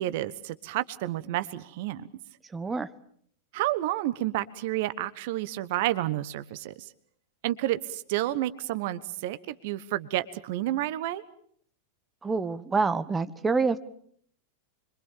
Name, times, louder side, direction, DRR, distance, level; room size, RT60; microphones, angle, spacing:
voice 1, 0.0-2.1 3.5-6.9 7.4-11.2, right 15 dB, 50° right, 14 dB, 1.1 m, -30 dB
voice 2, 2.5-2.9 12.2-13.8, right 4 dB, 15° right, 12 dB, 1.2 m, -27 dB
26.5 x 24.0 x 7.4 m, 0.65 s
figure-of-eight pair, 90°, 0 cm